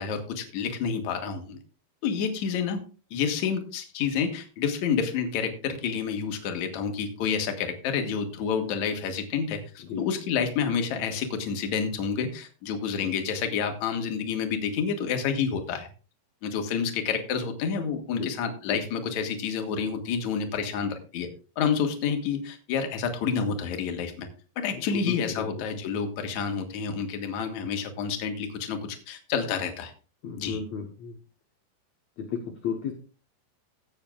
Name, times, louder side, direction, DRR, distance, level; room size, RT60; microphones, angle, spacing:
voice 1, 0.0-1.6 2.0-2.8 3.1-15.9 16.4-21.3 21.6-24.3 24.6-29.9 30.4-30.6, left 6 dB, 55° left, 5 dB, 2.2 m, -29 dB
voice 2, 24.7-25.5 30.2-31.1 32.2-32.9, left 6 dB, 85° left, 4 dB, 1.5 m, -33 dB
16.0 x 8.9 x 2.4 m, 0.36 s
omnidirectional pair, 4.9 m